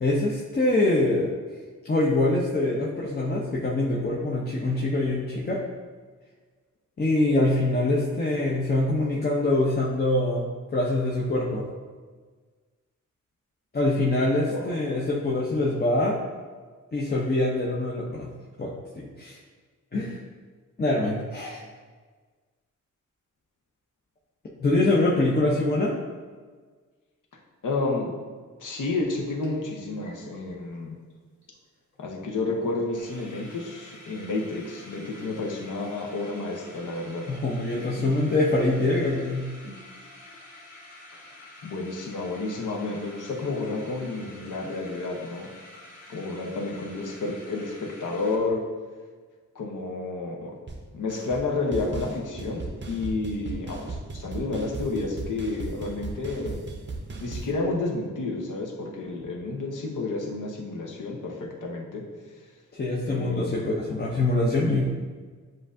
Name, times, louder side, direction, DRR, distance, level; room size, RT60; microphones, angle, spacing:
voice 1, 0.0-1.3 1.8-5.6 7.0-11.6 13.7-16.2 16.9-18.3 18.6-19.4 19.9-20.2 20.8-21.6 24.6-25.9 37.3-39.8 62.7-65.0, left 2 dB, 30° left, -4 dB, 0.6 m, -24 dB
voice 2, 27.6-28.1 28.6-31.0 32.0-37.2 38.0-38.1 41.6-45.5 46.1-48.6 49.5-50.5 50.9-56.6 57.2-62.0 63.0-63.7, left 3 dB, 75° left, -1 dB, 0.9 m, -30 dB
sound 1, 28.7-28.8 29.1-30.8 31.1-31.2 31.4-31.7 31.9-32.0 32.4-32.5 32.7-48.4, left 1 dB, 60° left, 1.4 m, -48 dB
sound 2, 50.7-50.8 51.1-51.5 51.7-57.5, right 3 dB, 35° right, 0.6 m, -36 dB
7.5 x 2.6 x 2.5 m, 1.5 s
wide cardioid pair, 95°, 31 cm